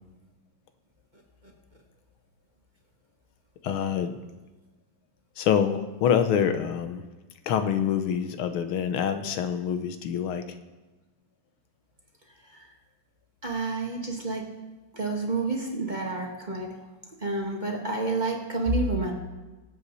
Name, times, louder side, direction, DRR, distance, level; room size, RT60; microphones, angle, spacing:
voice 1, 3.6-4.1 5.4-7.0 7.5-10.4, left 8 dB, 85° left, 9 dB, 1.7 m, -26 dB
voice 2, 13.4-14.4 14.9-16.7 17.2-19.1, right 2 dB, 20° right, -1 dB, 1.8 m, -29 dB
24.0 x 8.1 x 4.1 m, 1.2 s
omnidirectional pair, 2.3 m